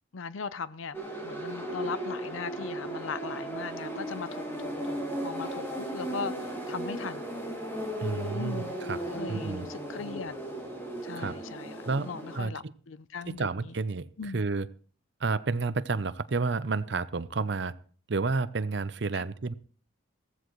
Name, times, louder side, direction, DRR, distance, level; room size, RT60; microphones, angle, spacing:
voice 1, 0.1-6.3 6.7-7.3 8.3-8.8 9.1-10.3 11.0-13.8 14.2-14.4 19.1-19.2, left 5 dB, 80° left, 0.6 m, -39 dB
sound 1, 0.9-12.4, right 1 dB, 10° left, 2.6 m, -36 dB
voice 2, 8.0-8.6 8.9-9.0 9.3-9.7 11.2-11.3 11.8-12.1 12.3-12.5 13.3-14.1 14.3-14.7 15.2-17.7 18.1-19.5, right 4 dB, 60° right, 0.6 m, -30 dB
15.5 x 14.5 x 3.1 m
head